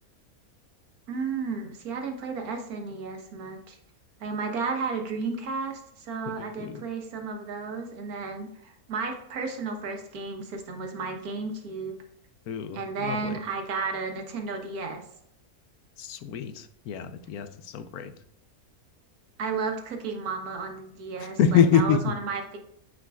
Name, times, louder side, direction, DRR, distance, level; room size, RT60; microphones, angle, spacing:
voice 1, 1.1-3.8 4.2-11.9 12.7-15.0 19.4-22.6, right 4 dB, 80° right, 3 dB, 1.5 m, -33 dB
voice 2, 6.4-6.8 12.5-13.4 16.0-18.1 21.2-22.1, left 7 dB, 85° left, 11 dB, 1.1 m, -26 dB
8.7 x 5.2 x 2.3 m, 0.77 s
omnidirectional pair, 1.5 m